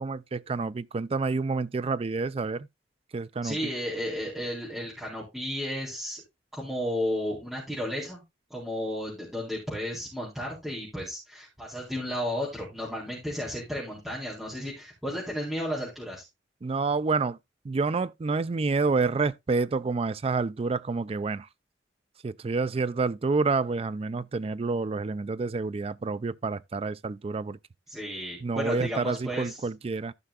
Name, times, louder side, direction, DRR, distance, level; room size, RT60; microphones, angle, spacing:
voice 1, 0.0-2.7 3.1-3.6 16.6-17.4 17.6-21.5 22.2-27.6 28.4-30.1, right 4 dB, 30° right, 0.4 m, -28 dB
voice 2, 3.4-6.2 6.5-8.2 8.5-16.2 27.9-29.6, equal, ahead, 3.8 m, -33 dB
15.0 x 5.8 x 2.3 m
head